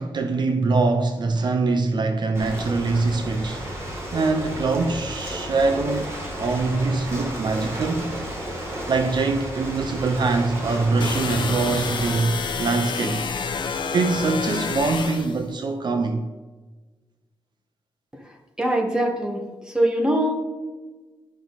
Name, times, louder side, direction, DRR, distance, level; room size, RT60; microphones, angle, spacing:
voice 1, 0.0-3.7 4.1-8.2 8.9-13.3 13.9-16.3, right 3 dB, 55° right, 0.7 m, -23 dB
Ocean, 2.3-12.2, equal, 30° right, 2.5 m, -33 dB
sound 1, 11.0-15.4, left 5 dB, 60° left, 0.8 m, -28 dB
voice 2, 18.6-19.4 19.7-20.4, right 1 dB, 10° right, 1.5 m, -22 dB
11.5 x 6.0 x 4.1 m
wide cardioid pair, 135°, 9 cm